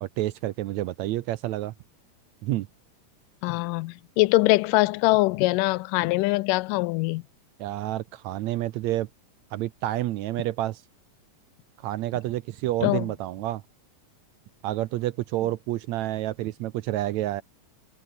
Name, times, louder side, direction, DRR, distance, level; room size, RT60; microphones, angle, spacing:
voice 1, 0.0-1.7 2.4-2.7 7.6-9.1 9.5-10.8 11.8-13.6 14.6-17.4, right 15 dB, 75° right, 1.8 m, -29 dB
voice 2, 3.4-7.2 12.8-13.1, left 22 dB, 85° left, 2.2 m, -23 dB
omnidirectional pair, 3.7 m